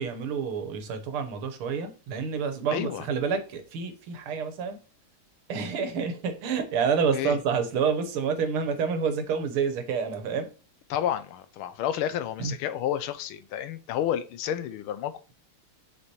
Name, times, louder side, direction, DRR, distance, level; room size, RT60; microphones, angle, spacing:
voice 1, 0.0-4.8 5.5-10.5 12.4-12.5, right 6 dB, 80° right, 1.8 m, -28 dB
voice 2, 2.7-3.0 7.1-7.4 10.9-15.2, left 10 dB, 85° left, 1.5 m, -30 dB
6.8 x 5.1 x 3.0 m
omnidirectional pair, 2.3 m